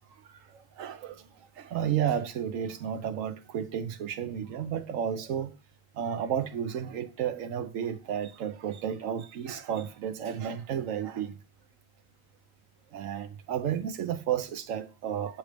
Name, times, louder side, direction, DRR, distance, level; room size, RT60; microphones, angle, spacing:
voice 1, 0.5-1.3 1.6-5.5 5.9-11.4 12.9-15.4, right 9 dB, 75° right, 1.1 m, -32 dB
7.7 x 3.2 x 5.0 m
omnidirectional pair, 1.4 m